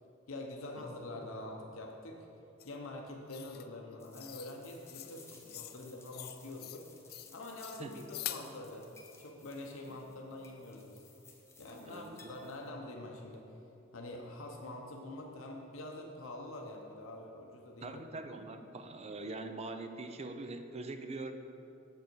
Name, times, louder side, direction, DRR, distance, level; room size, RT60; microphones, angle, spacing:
voice 1, 0.3-2.2 2.6-6.9 7.3-8.9 9.2-11.0 11.6-13.5 13.9-18.0, left 2 dB, 75° left, 1 dB, 0.8 m, -45 dB
sound 1, 2.6-2.7 3.3-3.7 4.2-4.5 4.9-5.1 5.5-5.8 6.1-6.8 7.1-7.3 7.6-8.5, left 13 dB, 50° left, 0.4 m, -44 dB
sound 2, 4.0-12.7, left 4 dB, 15° left, 0.8 m, -59 dB
voice 2, 9.9-10.3 11.9-12.3 17.8-21.3, right 2 dB, 30° right, 7 dB, 0.5 m, -43 dB
7.6 x 6.9 x 4.6 m, 2.8 s
head